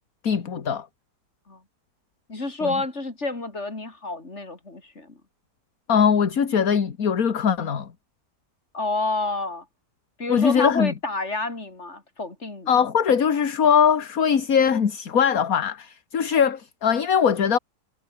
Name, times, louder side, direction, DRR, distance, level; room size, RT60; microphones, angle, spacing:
voice 1, 0.2-0.9 2.6-2.7 5.9-7.9 10.3-10.9 12.7-17.6, left 7 dB, 60° left, 2.1 m, -21 dB
voice 2, 2.3-5.2 8.7-9.6 10.2-12.7, left 2 dB, 45° left, 4.5 m, -29 dB
omnidirectional pair, 1.7 m